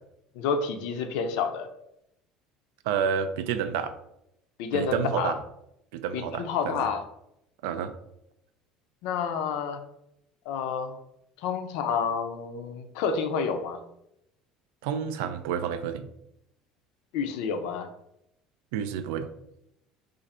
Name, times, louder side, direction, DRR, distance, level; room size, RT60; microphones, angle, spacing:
voice 1, 0.4-1.7 4.6-5.3 6.1-7.0 9.0-9.8 10.5-11.0 11.4-13.8 17.1-17.9, left 6 dB, 75° left, 7 dB, 0.4 m, -29 dB
voice 2, 2.9-3.9 4.7-5.4 5.9-6.9 7.6-7.9 14.8-16.1 18.7-19.3, right 7 dB, 85° right, 10 dB, 0.3 m, -29 dB
2.5 x 2.5 x 4.1 m, 0.81 s
cardioid pair, 135°, 0 cm